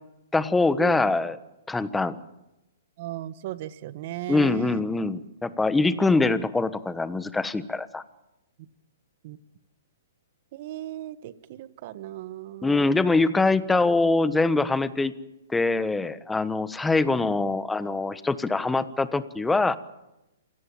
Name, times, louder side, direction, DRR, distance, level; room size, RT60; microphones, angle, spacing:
voice 1, 0.3-1.4 1.7-2.2 4.3-8.0 12.6-15.1 15.5-19.8, left 3 dB, 5° left, 13 dB, 1.2 m, -23 dB
voice 2, 3.0-4.8 8.6-8.7 9.2-9.4 10.5-12.9, right 14 dB, 50° right, 14 dB, 1.5 m, -36 dB
27.0 x 18.0 x 8.9 m, 0.95 s
hypercardioid pair, 140°, 0 cm